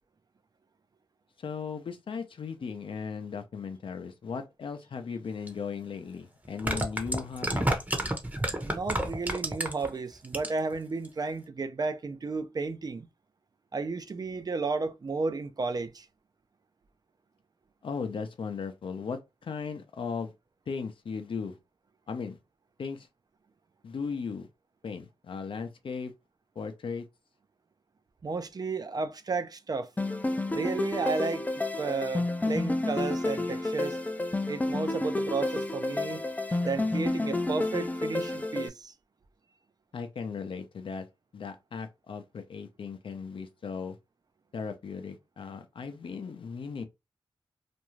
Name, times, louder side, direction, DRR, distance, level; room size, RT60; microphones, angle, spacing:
voice 1, 1.4-7.7 17.8-20.3 20.7-21.6 22.1-22.4 22.8-23.1 23.8-24.5 24.8-26.1 26.6-27.1 39.9-41.1 41.3-44.0 44.5-46.8, left 5 dB, 70° left, 0.5 m, -37 dB
sound 1, 5.5-5.6 6.5-9.9 10.2-10.7 11.1-11.2, right 1 dB, 15° right, 0.8 m, -29 dB
voice 2, 8.6-13.1 13.7-16.1 28.2-29.9 30.5-34.0 34.5-38.9, right 4 dB, 45° right, 0.4 m, -33 dB
sound 2, 30.0-38.7, left 2 dB, 20° left, 0.4 m, -30 dB
2.5 x 2.3 x 3.0 m
cardioid pair, 55°, 9 cm